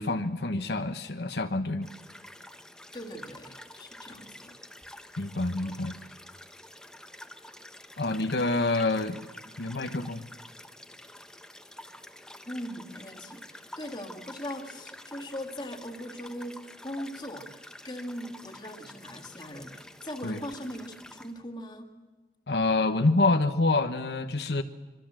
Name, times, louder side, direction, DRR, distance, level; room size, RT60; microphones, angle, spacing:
voice 1, 0.0-1.9 5.2-5.9 8.0-9.2 9.6-10.2 20.2-20.4 22.5-24.6, left 2 dB, 75° left, 8 dB, 1.1 m, -27 dB
sound 1, 1.8-21.4, left 1 dB, 5° left, 1.2 m, -48 dB
voice 2, 2.9-4.6 5.6-5.7 12.5-21.9, equal, 25° left, 5 dB, 2.2 m, -40 dB
26.0 x 23.0 x 7.6 m, 1.3 s
head